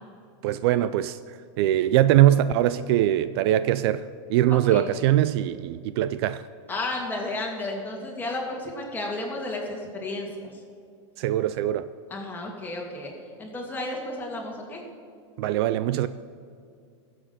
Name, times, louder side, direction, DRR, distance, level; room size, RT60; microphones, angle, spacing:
voice 1, 0.4-1.2 1.6-6.4 11.2-11.9 15.4-16.1, right 12 dB, 55° right, 0.4 m, -22 dB
voice 2, 6.7-10.5 12.1-13.1 13.4-14.8, left 2 dB, 10° left, 2.4 m, -32 dB
18.0 x 7.5 x 5.9 m
supercardioid pair, 145°, 16 cm